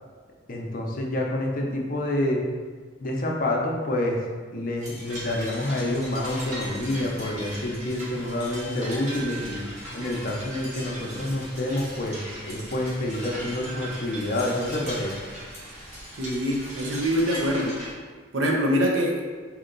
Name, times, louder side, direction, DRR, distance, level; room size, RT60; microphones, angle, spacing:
voice 1, 0.5-2.4 3.0-4.2 4.5-9.6 9.9-12.2 12.4-15.2, left 1 dB, 45° left, 0 dB, 0.6 m, -28 dB
sound 1, 4.8-17.9, right 1 dB, 35° right, 1.1 m, -38 dB
voice 2, 16.1-17.7 18.3-19.2, equal, 75° right, -1 dB, 0.7 m, -24 dB
4.3 x 2.8 x 3.9 m, 1.5 s
head